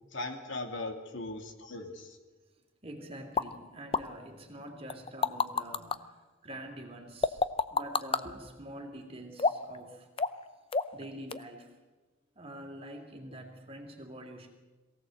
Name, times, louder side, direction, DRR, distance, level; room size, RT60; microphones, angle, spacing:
voice 1, 0.1-2.2, left 2 dB, 60° left, 5 dB, 2.5 m, -39 dB
voice 2, 2.8-6.2 6.4-7.4 7.7-10.1 10.9-11.8 12.3-14.5, right 1 dB, 30° right, 3 dB, 3.1 m, -45 dB
sound 1, 3.4-3.5 3.9-4.0 4.9-6.0 7.2-8.2 9.4-9.8 10.2-10.4 10.7-11.0 11.3-11.4, left 4 dB, 25° left, 0.6 m, -28 dB
22.5 x 16.5 x 7.9 m, 1.2 s
head